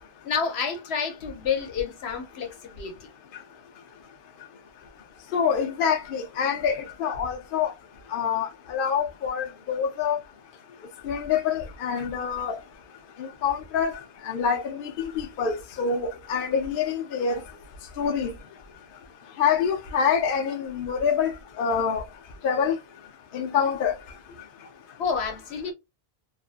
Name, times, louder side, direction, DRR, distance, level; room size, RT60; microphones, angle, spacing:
voice 1, 0.2-3.1 25.0-25.7, left 6 dB, 85° left, 1.0 m, -29 dB
voice 2, 5.3-7.7 8.1-10.2 11.0-12.6 13.2-13.9 14.2-17.4 18.0-18.3 19.4-22.0 22.4-22.8 23.3-23.9, left 7 dB, 65° left, 0.7 m, -26 dB
2.5 x 2.5 x 2.4 m
omnidirectional pair, 1.0 m